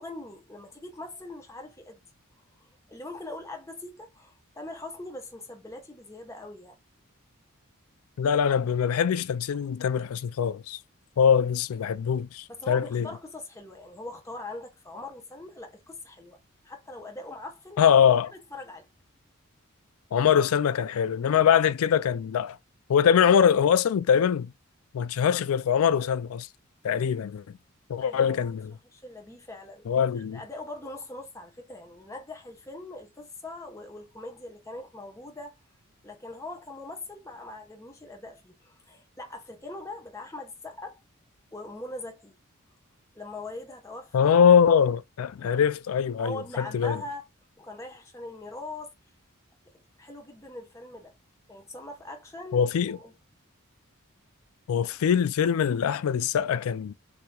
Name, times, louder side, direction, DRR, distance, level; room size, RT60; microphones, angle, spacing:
voice 1, 0.0-2.0 2.6-6.7 12.5-16.4 16.6-17.9 18.3-18.9 28.0-28.6 28.9-29.9 30.2-35.6 36.0-41.0 41.5-42.3 43.1-44.3 46.2-47.3 47.6-48.9 50.0-51.1 51.5-53.1, left 2 dB, 15° left, 1.1 m, -41 dB
voice 2, 8.2-10.8 11.2-13.1 17.8-18.3 20.1-22.6 22.9-24.5 24.9-26.5 26.8-27.6 27.9-28.7 29.9-30.4 44.1-47.0 52.5-53.0 54.7-56.9, left 7 dB, 75° left, 0.3 m, -23 dB
6.3 x 2.9 x 2.3 m
head